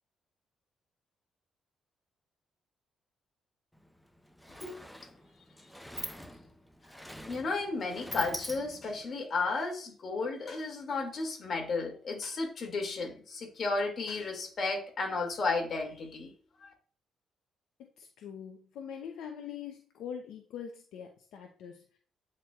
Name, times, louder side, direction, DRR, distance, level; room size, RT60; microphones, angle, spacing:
Sliding door, 3.7-3.9 4.1-9.1, equal, ahead, 0.7 m, -44 dB
voice 1, 7.3-16.3 16.6-16.7, left 3 dB, 50° left, 2.2 m, -33 dB
voice 2, 17.8-21.8, left 8 dB, 85° left, 0.7 m, -43 dB
9.1 x 4.4 x 2.4 m
cardioid pair, 90°, 0 cm